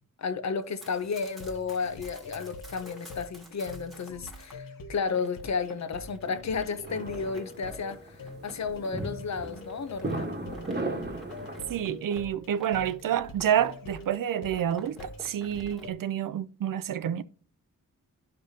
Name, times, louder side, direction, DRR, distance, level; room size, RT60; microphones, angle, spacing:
voice 1, 0.2-10.3, left 5 dB, 55° left, 0.7 m, -33 dB
Run, 0.6-4.6 5.1-14.2 14.5-15.9, equal, ahead, 1.4 m, -51 dB
sound 1, 1.0-15.9, left 2 dB, 80° left, 1.0 m, -45 dB
sound 2, 6.8-11.8, right 2 dB, 30° right, 1.2 m, -36 dB
voice 2, 11.7-17.2, right 10 dB, 75° right, 0.5 m, -28 dB
11.0 x 5.3 x 2.8 m
wide cardioid pair, 155°, 33 cm